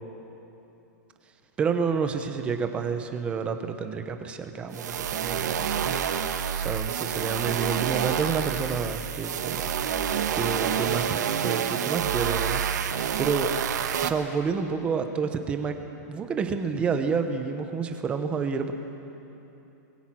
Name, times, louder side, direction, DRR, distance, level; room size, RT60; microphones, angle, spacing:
voice 1, 1.6-6.3 6.6-9.6 10.3-12.9 13.2-13.6 14.0-15.7 16.1-18.7, right 5 dB, 10° right, 7 dB, 0.9 m, -29 dB
sound 1, 4.7-14.1, right 8 dB, 70° right, 1.4 m, -28 dB
27.5 x 21.5 x 6.2 m, 3.0 s
supercardioid pair, 175°, 10 cm